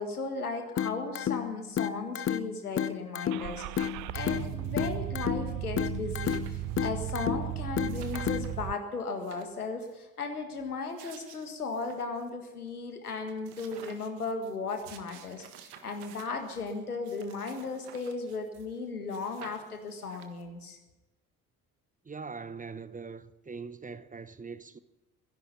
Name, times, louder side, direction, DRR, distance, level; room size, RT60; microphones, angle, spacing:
voice 1, 0.0-3.9 4.1-20.8, left 4 dB, 85° left, 1.8 m, -36 dB
sound 1, 0.8-8.8, left 9 dB, 30° left, 0.8 m, -33 dB
sound 2, 3.1-3.2 3.5-5.2 5.6-5.7 5.9-7.1 7.4-7.5 7.9-8.7 9.1-10.0 10.6-12.3 12.7-12.8 13.0-18.8 19.1-20.6, right 9 dB, 60° right, 1.7 m, -53 dB
Car / Engine starting, 3.3-8.7, right 16 dB, 45° right, 0.5 m, -36 dB
voice 2, 22.0-24.8, right 5 dB, 20° right, 0.9 m, -42 dB
23.5 x 11.0 x 5.5 m
figure-of-eight pair, 50°, 44 cm